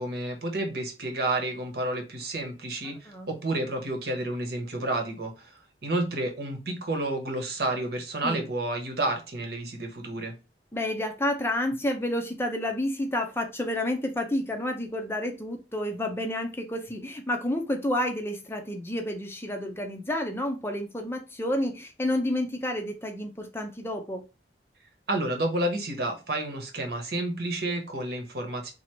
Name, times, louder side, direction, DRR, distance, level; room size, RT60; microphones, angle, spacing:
voice 1, 0.0-10.3 25.1-28.7, right 2 dB, 60° right, 1.1 m, -30 dB
voice 2, 10.7-24.2, left 1 dB, 15° left, 0.5 m, -30 dB
3.1 x 2.8 x 4.3 m
head